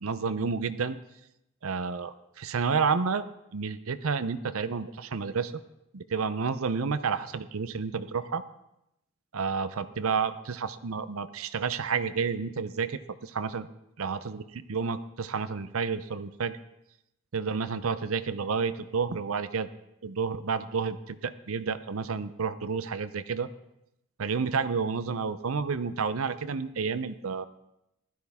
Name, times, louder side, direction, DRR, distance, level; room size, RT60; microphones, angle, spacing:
voice 1, 0.0-1.0 1.6-3.2 3.5-5.6 5.9-8.4 9.3-13.7 14.0-16.6 17.3-19.7 20.0-23.5 24.2-27.5, right 5 dB, 75° right, 13 dB, 0.6 m, -30 dB
16.0 x 12.0 x 3.6 m, 0.84 s
head